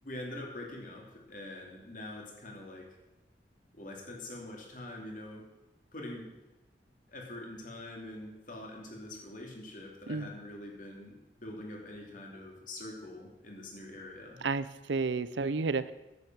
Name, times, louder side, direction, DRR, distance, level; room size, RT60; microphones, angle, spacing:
voice 1, 0.0-3.0 3.7-5.5 5.9-6.4 7.1-11.1 11.4-14.4, left 1 dB, 50° left, 0 dB, 2.9 m, -44 dB
voice 2, 14.4-15.9, right 4 dB, 85° right, 15 dB, 0.6 m, -31 dB
10.5 x 8.6 x 7.4 m, 1.0 s
head